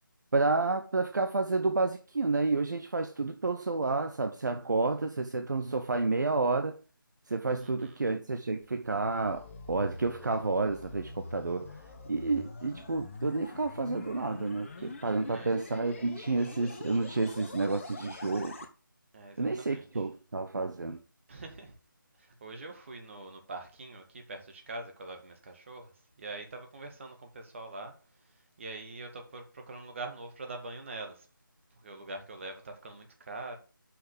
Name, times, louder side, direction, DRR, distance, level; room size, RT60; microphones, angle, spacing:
voice 1, 0.3-6.8 7.3-11.7 12.1-18.6 19.4-21.0, right 3 dB, 55° right, 0.7 m, -30 dB
voice 2, 7.6-7.9 14.8-15.5 19.1-19.9 21.3-21.7 22.2-25.9 26.2-27.9 28.6-31.3 31.8-33.6, right 2 dB, 35° right, 1.7 m, -44 dB
sound 1, 8.6-18.7, left 3 dB, 35° left, 1.0 m, -45 dB
5.8 x 5.5 x 6.6 m
figure-of-eight pair, 155°, 11 cm